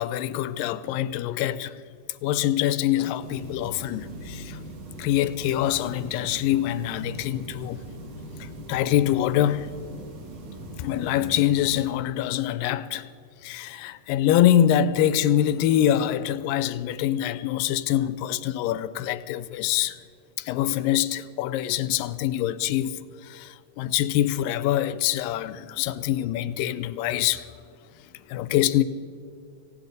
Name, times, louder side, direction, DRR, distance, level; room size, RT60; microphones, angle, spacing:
voice 1, 0.0-1.7 2.2-4.6 5.0-7.8 8.4-9.7 10.8-13.1 13.4-20.0 20.4-27.5 28.3-28.8, left 12 dB, 85° left, 2.3 m, -25 dB
sound 1, 3.2-11.9, right 1 dB, 65° right, 3.0 m, -40 dB
19.0 x 16.5 x 4.0 m
omnidirectional pair, 4.0 m